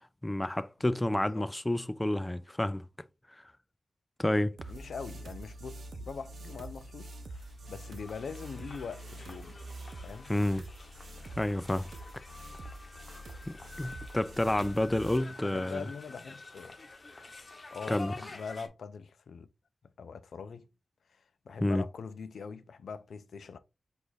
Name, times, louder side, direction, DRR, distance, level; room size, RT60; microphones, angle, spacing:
voice 1, 0.2-2.8 4.2-4.6 10.3-10.6 11.4-11.9 13.5-15.8 17.9-18.1 21.6-21.8, left 1 dB, 20° left, 0.4 m, -29 dB
voice 2, 0.8-1.4 4.7-9.6 10.0-10.3 15.3-16.8 17.7-19.5 20.0-20.7 21.1-23.6, left 5 dB, 80° left, 0.4 m, -43 dB
sound 1, 4.6-15.2, right 1 dB, 75° right, 0.6 m, -46 dB
sound 2, 7.5-18.7, left 3 dB, 50° left, 0.8 m, -49 dB
4.9 x 2.4 x 3.9 m
cardioid pair, 40°, 0 cm